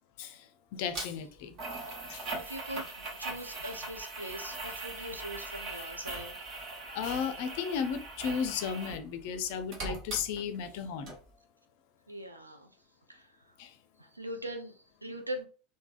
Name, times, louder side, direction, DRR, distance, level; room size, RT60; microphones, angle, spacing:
voice 1, 0.7-1.5 2.1-2.2 6.9-11.2 13.6-13.7, left 7 dB, 55° left, 0.4 m, -34 dB
sound 1, 0.9-1.1 1.6-9.0 9.3-10.8 11.1-11.2, right 2 dB, 40° right, 1.1 m, -40 dB
voice 2, 2.3-6.5 12.1-12.7 13.1-13.5 14.0-15.5, right 1 dB, 85° right, 0.4 m, -42 dB
3.3 x 2.1 x 2.4 m
figure-of-eight pair, 80°, 0 cm